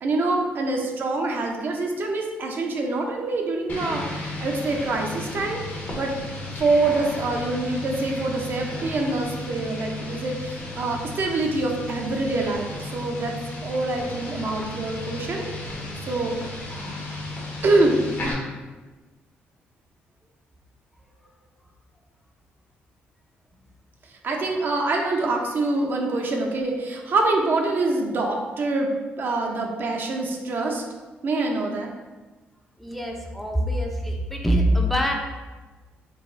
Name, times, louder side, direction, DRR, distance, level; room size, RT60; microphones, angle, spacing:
voice 1, 0.0-5.6 5.9-6.1 6.6-13.3 13.6-15.5 16.0-16.4 17.6-18.0 24.0-28.9 29.2-30.8 31.2-31.9, right 2 dB, 55° right, 1 dB, 0.6 m, -25 dB
sound 1, 3.7-18.3, left 2 dB, 50° left, 1.1 m, -34 dB
voice 2, 32.8-35.2, equal, 5° left, 0 dB, 0.5 m, -24 dB
4.0 x 2.4 x 3.7 m, 1.3 s
cardioid pair, 80°, 4 cm